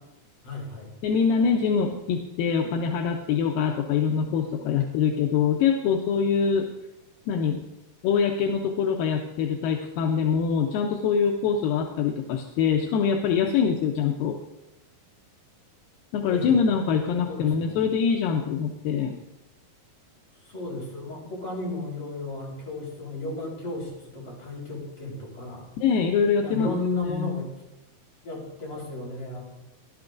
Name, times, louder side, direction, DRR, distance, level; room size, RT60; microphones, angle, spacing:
voice 1, 0.4-0.9 16.2-16.6 17.3-17.8 20.4-25.7 26.4-27.5 28.2-29.4, left 2 dB, 40° left, -5 dB, 4.9 m, -34 dB
voice 2, 1.0-6.7 7.3-7.6 8.0-14.4 16.1-19.2 25.8-26.7 27.1-27.3, left 6 dB, 80° left, 1 dB, 2.4 m, -24 dB
17.0 x 11.5 x 2.6 m, 0.94 s
omnidirectional pair, 4.0 m